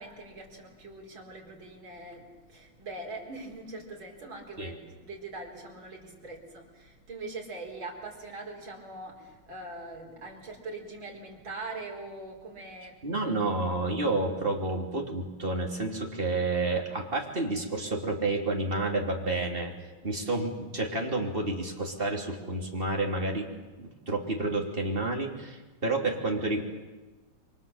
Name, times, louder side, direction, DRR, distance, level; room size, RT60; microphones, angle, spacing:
voice 1, 0.0-12.9 20.0-20.4, right 2 dB, 75° right, -1 dB, 5.3 m, -42 dB
voice 2, 13.0-19.7 20.0-23.5 23.8-26.6, right 2 dB, 25° right, 1 dB, 3.4 m, -30 dB
29.0 x 24.0 x 7.3 m, 1.2 s
omnidirectional pair, 2.2 m